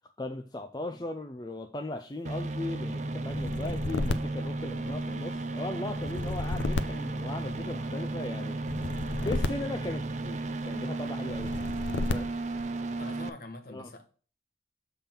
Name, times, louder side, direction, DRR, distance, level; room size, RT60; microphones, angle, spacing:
voice 1, 0.2-8.6 9.2-11.6 12.1-12.3 13.7-13.9, left 2 dB, 20° left, 0.4 m, -37 dB
sound 1, 2.2-13.3, right 2 dB, 40° right, 0.4 m, -34 dB
sound 2, 3.3-5.3 5.9-7.9 8.6-10.5 11.3-12.6, left 2 dB, 85° left, 0.6 m, -33 dB
voice 2, 13.0-14.0, left 2 dB, 50° left, 1.2 m, -45 dB
7.1 x 3.6 x 5.8 m
head